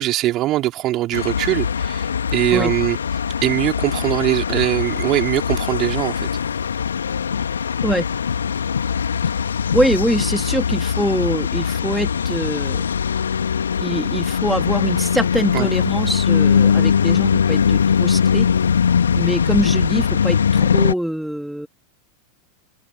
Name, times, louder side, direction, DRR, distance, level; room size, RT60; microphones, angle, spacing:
voice 1, 0.0-3.0 3.4-6.3 15.5-15.7, right 15 dB, 35° right, 4.0 m, -21 dB
sound 1, 1.1-20.9, left 7 dB, 70° left, 2.5 m, -20 dB
voice 2, 9.7-12.8 13.8-18.5 19.1-21.7, equal, ahead, 2.8 m, -23 dB
figure-of-eight pair, 90°, 0 cm